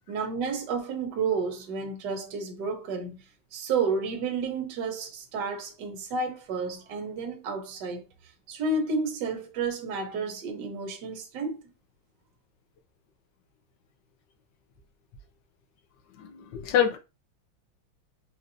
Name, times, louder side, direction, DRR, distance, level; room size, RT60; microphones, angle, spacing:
voice 1, 0.1-8.1 8.5-11.6, right 4 dB, 65° right, 1.3 m, -31 dB
voice 2, 16.2-17.0, left 9 dB, 70° left, 1.3 m, -26 dB
4.3 x 2.6 x 2.5 m
omnidirectional pair, 2.2 m